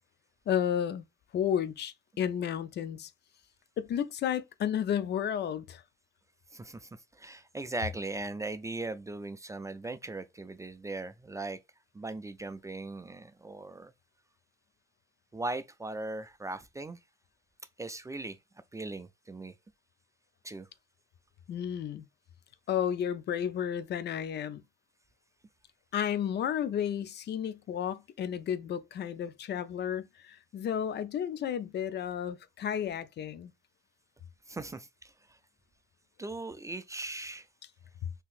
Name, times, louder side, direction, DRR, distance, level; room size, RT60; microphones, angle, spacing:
voice 1, 0.5-1.0 1.3-3.1 3.8-5.8 21.5-22.0 22.7-24.6 25.9-33.5, left 9 dB, 60° left, 0.5 m, -32 dB
voice 2, 6.5-11.6 11.9-13.9 15.3-17.0 17.8-18.4 18.7-19.6 20.4-20.7 34.5-35.4 36.2-37.5, right 2 dB, 15° right, 0.3 m, -39 dB
3.8 x 2.8 x 2.4 m
cardioid pair, 90°, 20 cm